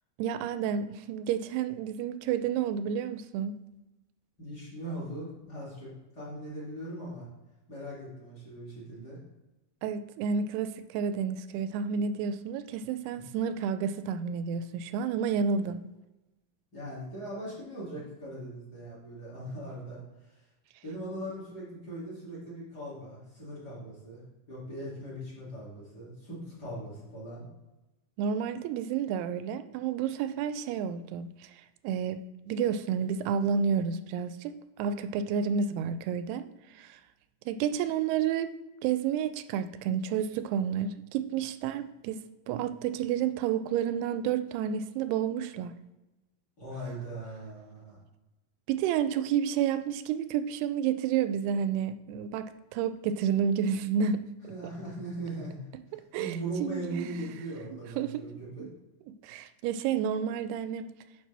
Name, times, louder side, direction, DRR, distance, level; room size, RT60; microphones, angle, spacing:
voice 1, 0.2-3.5 9.8-15.8 28.2-31.5 31.8-32.2 32.5-36.5 36.8-37.0 37.5-38.5 38.8-45.7 48.7-54.5 55.9-57.1 58.0-58.2 59.1-60.9, right 7 dB, 90° right, 11 dB, 2.6 m, -30 dB
voice 2, 4.4-7.3 7.7-9.2 13.1-13.2 16.7-20.5 20.8-24.2 24.5-27.4 46.6-48.0 54.5-55.6 55.9-58.7, right 1 dB, 30° left, -6 dB, 2.6 m, -40 dB
9.5 x 5.8 x 3.4 m, 1.0 s
omnidirectional pair, 4.5 m